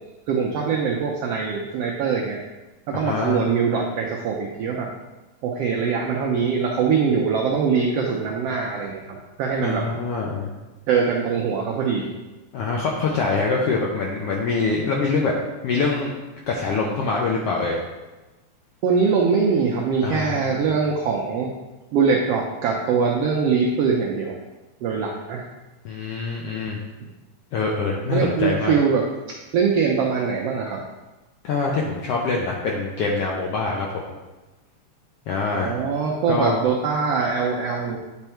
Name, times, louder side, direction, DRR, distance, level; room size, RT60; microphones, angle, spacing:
voice 1, 0.3-2.4 2.9-4.9 5.4-9.8 10.9-12.1 18.8-21.5 21.9-24.4 24.8-25.4 28.1-30.8 35.5-38.0, right 5 dB, 85° right, -1 dB, 1.4 m, -22 dB
voice 2, 2.9-3.4 9.6-10.5 12.5-15.3 15.6-16.1 16.5-17.8 20.0-20.6 25.8-26.8 27.5-28.7 31.4-34.0 35.3-35.8 36.3-36.6, left 4 dB, 75° left, -2 dB, 1.4 m, -24 dB
9.1 x 3.5 x 4.4 m, 1.1 s
omnidirectional pair, 3.5 m